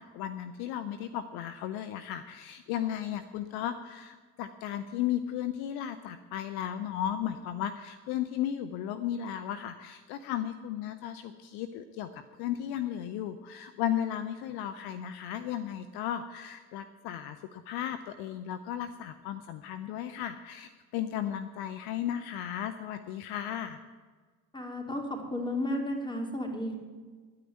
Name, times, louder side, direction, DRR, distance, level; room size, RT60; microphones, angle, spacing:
voice 1, 0.0-23.8, left 10 dB, 55° left, 10 dB, 0.8 m, -35 dB
voice 2, 24.5-26.7, left 1 dB, 10° left, 2 dB, 3.3 m, -33 dB
10.0 x 9.5 x 9.3 m, 1.5 s
figure-of-eight pair, 60°, 45 cm